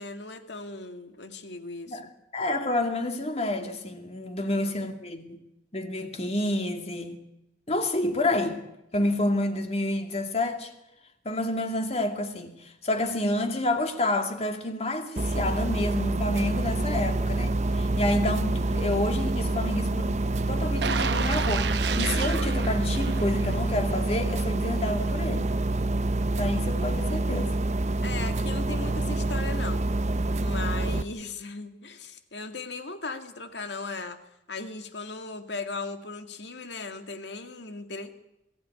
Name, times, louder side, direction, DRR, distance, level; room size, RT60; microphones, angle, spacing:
voice 1, 0.0-2.1 4.4-4.8 28.0-29.9 30.4-34.2 34.5-38.1, left 3 dB, 70° left, 2.0 m, -37 dB
voice 2, 2.3-5.4 5.7-7.2 7.7-8.7 8.9-10.7 11.2-20.1 20.5-25.5 26.4-27.5, left 1 dB, 35° left, 2.3 m, -29 dB
sound 1, 15.2-31.0, right 2 dB, 40° right, 0.8 m, -27 dB
sound 2, 20.8-23.8 24.2-24.3, right 6 dB, 70° right, 1.0 m, -31 dB
21.5 x 15.0 x 9.5 m
head